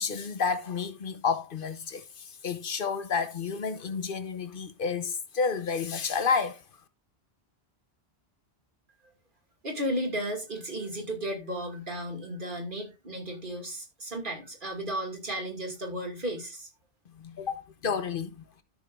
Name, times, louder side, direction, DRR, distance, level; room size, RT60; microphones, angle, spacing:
voice 1, 0.0-6.6 17.2-18.4, left 5 dB, 55° left, 1.1 m, -30 dB
voice 2, 9.6-16.7, right 1 dB, 50° right, 2.5 m, -34 dB
13.0 x 6.5 x 2.5 m
omnidirectional pair, 1.1 m